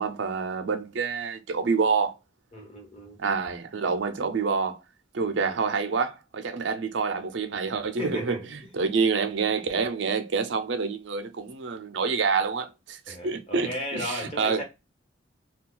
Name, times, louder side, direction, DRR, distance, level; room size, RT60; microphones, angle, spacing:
voice 1, 0.0-2.1 3.2-4.8 5.1-8.4 8.7-14.6, right 5 dB, 75° right, 0.5 m, -27 dB
voice 2, 2.5-3.2 8.0-8.5 13.1-14.6, left 1 dB, 35° left, 1.1 m, -34 dB
2.3 x 2.3 x 3.6 m
head